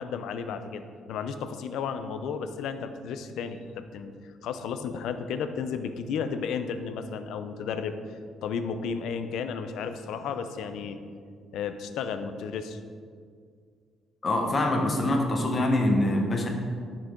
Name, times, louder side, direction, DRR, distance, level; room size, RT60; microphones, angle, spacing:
voice 1, 0.0-7.9 8.4-11.0 11.5-12.8, left 6 dB, 75° left, 9 dB, 0.6 m, -33 dB
voice 2, 14.2-16.5, left 1 dB, 30° left, 2 dB, 1.1 m, -24 dB
11.5 x 6.0 x 3.8 m, 2.1 s
cardioid pair, 150°, 0 cm